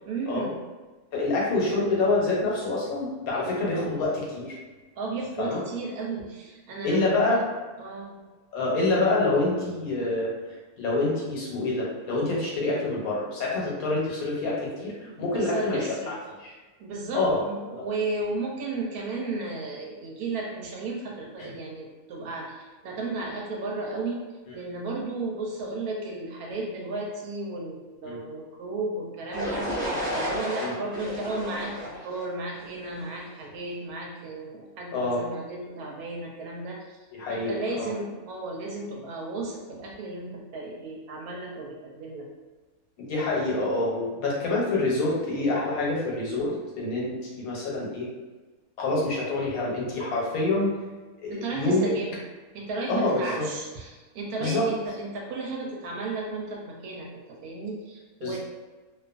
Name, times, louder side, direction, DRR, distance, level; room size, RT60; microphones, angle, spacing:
voice 1, 0.1-0.5 5.0-7.4 7.8-8.2 15.1-16.1 16.8-24.2 24.5-29.8 30.1-37.0 37.3-42.3 51.3-52.1 52.5-58.4, right 3 dB, 85° right, -1 dB, 1.1 m, -34 dB
voice 2, 1.1-4.6 5.4-5.6 6.8-7.4 8.5-10.3 10.8-16.1 16.4-16.5 17.1-17.4 21.4-21.5 28.0-28.2 30.6-30.7 34.9-35.2 37.1-37.9 43.0-48.1 48.8-50.7 51.2-51.8 52.9-53.4 54.4-54.7 58.2-58.4, left 2 dB, 75° left, -4 dB, 1.2 m, -26 dB
sound 1, 29.3-33.2, equal, 40° right, 1.0 m, -32 dB
2.5 x 2.4 x 2.4 m, 1.3 s
omnidirectional pair, 1.6 m